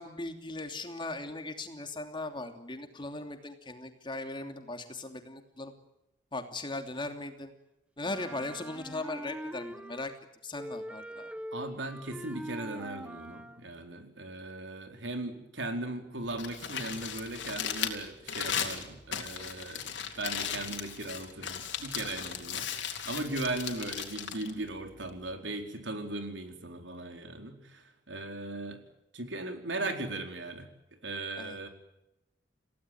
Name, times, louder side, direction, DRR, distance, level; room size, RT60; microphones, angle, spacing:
voice 1, 0.0-5.7 6.3-7.5 8.0-10.1 10.4-11.3 31.4-31.7, left 2 dB, 25° left, 6 dB, 2.9 m, -38 dB
Wind instrument woodwind instrument, 8.0-10.3 10.5-13.7, equal, 5° right, 1.1 m, -43 dB
voice 2, 11.5-28.8 29.1-30.7 31.0-31.7, right 2 dB, 90° right, 5 dB, 4.3 m, -38 dB
Crumpling crinkling, 16.2-25.3, left 8 dB, 75° left, 3.7 m, -37 dB
29.0 x 17.0 x 9.4 m, 0.90 s
head